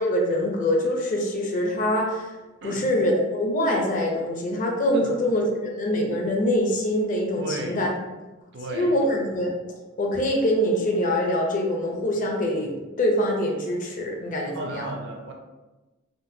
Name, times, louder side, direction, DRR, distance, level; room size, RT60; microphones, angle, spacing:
voice 1, 0.0-2.3 2.6-7.9 8.7-9.5 10.0-14.9, left 1 dB, 40° left, 0 dB, 0.5 m, -24 dB
voice 2, 7.4-7.8 8.5-8.9 14.5-15.3, right 2 dB, 60° right, 2 dB, 0.5 m, -34 dB
3.7 x 2.1 x 2.6 m, 1.1 s
head